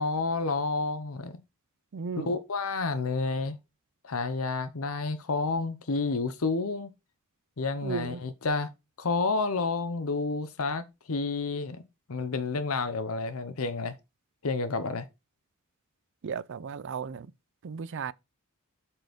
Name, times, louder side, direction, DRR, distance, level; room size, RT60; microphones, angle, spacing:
voice 1, 0.0-1.4 2.3-3.6 4.0-6.9 7.6-8.7 9.0-11.8 12.1-14.0 14.4-15.1, left 3 dB, 65° left, 0.8 m, -30 dB
voice 2, 1.9-2.4 7.8-8.2 16.2-17.3 17.6-18.1, right 6 dB, 55° right, 0.4 m, -35 dB
8.0 x 4.4 x 5.1 m
head